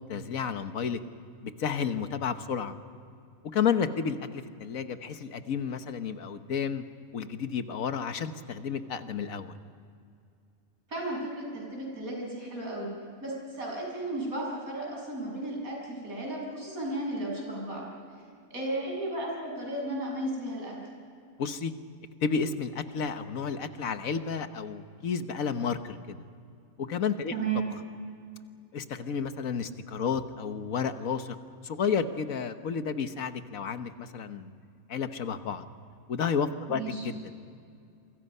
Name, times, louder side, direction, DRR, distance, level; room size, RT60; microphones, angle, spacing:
voice 1, 0.1-1.0 1.4-2.8 3.5-6.8 7.1-9.6 21.4-21.7 22.2-26.2 26.8-27.3 28.7-31.4 31.6-34.5 34.9-35.6 36.1-37.2, left 6 dB, 75° left, 9 dB, 1.5 m, -31 dB
voice 2, 10.9-12.9 13.2-17.9 18.5-20.8 27.3-27.7 36.7-37.1, right 2 dB, 85° right, -2 dB, 7.7 m, -34 dB
27.0 x 25.0 x 5.5 m, 2.4 s
omnidirectional pair, 1.5 m